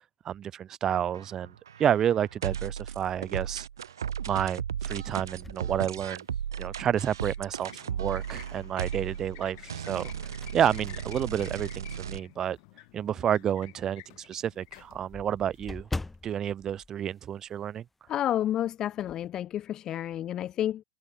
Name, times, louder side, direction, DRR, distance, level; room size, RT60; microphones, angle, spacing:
voice 1, 0.0-1.5 1.8-3.7 4.2-6.2 6.6-10.1 10.5-12.6 12.9-15.9 16.2-17.8, right 9 dB, 25° right, 0.8 m, -30 dB
sound 1, 1.0-12.2, right 8 dB, 85° right, 1.1 m, -36 dB
sound 2, 5.4-6.7 7.2-7.3 8.8-9.3 9.8-12.4 12.9-13.0 13.4-13.5 13.8-13.9 14.1-17.9 18.1-18.4 18.7-19.3, left 2 dB, 5° left, 6.7 m, -43 dB
sound 3, 6.8-16.2, left 33 dB, 50° left, 5.1 m, -52 dB
voice 2, 18.1-20.8, left 11 dB, 30° left, 0.7 m, -30 dB
hypercardioid pair, 120°, 2 cm